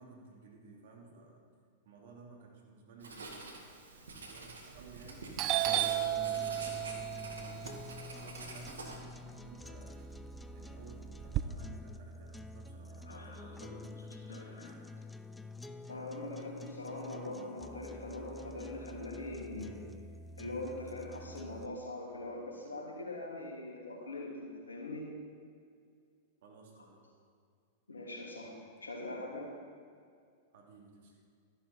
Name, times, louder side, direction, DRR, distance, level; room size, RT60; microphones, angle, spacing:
voice 1, 0.0-1.4 1.8-3.6 4.3-5.4 5.8-6.6 7.4-7.8 8.2-10.1 10.5-14.8 21.3-21.5 26.4-27.0 30.5-31.2, right 4 dB, 65° right, 0 dB, 2.6 m, -56 dB
Writing, 3.0-9.0, right 3 dB, 80° right, 1.8 m, -47 dB
Doorbell, 4.8-5.1 5.4-9.5 9.9-11.4, right 13 dB, 40° right, 0.5 m, -34 dB
sound 1, 5.7-21.7, left 2 dB, 5° left, 0.5 m, -48 dB
voice 2, 13.1-14.7 15.9-19.9 20.4-25.1 27.9-28.5 28.8-29.5, left 2 dB, 85° left, -1 dB, 2.8 m, -42 dB
13.0 x 11.0 x 4.3 m, 2.2 s
hypercardioid pair, 100°, 0 cm